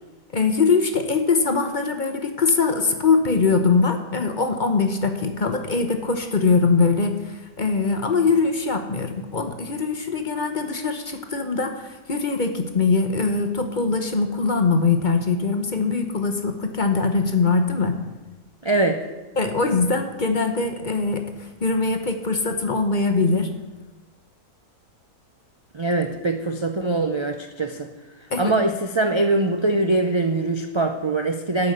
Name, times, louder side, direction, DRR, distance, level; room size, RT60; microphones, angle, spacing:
voice 1, 0.3-17.9 19.4-23.5 28.3-28.5, left 4 dB, 35° left, 6 dB, 1.0 m, -22 dB
voice 2, 18.6-19.0 25.7-27.9 28.4-31.7, right 2 dB, 50° right, 5 dB, 0.3 m, -22 dB
12.5 x 5.5 x 8.0 m, 1.2 s
omnidirectional pair, 1.6 m